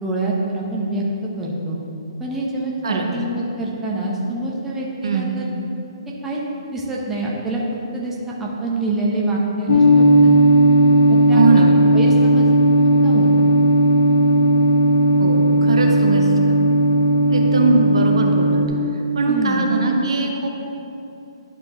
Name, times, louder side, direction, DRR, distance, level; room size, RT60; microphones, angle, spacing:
voice 1, 0.0-1.0 1.4-1.8 2.2-5.5 6.2-6.4 6.7-7.6 7.9-10.3 11.1-11.6 11.9-12.4 13.0-13.3 19.3-19.7, right 2 dB, 10° right, -4 dB, 1.0 m, -25 dB
sound 1, 9.7-18.7, right 1 dB, 75° left, 0.7 m, -15 dB
voice 2, 11.3-11.7 15.2-16.7 17.3-18.6 19.1-20.5, right 3 dB, 70° right, 2 dB, 0.8 m, -20 dB
11.0 x 4.3 x 3.1 m, 2.8 s
hypercardioid pair, 135°, 3 cm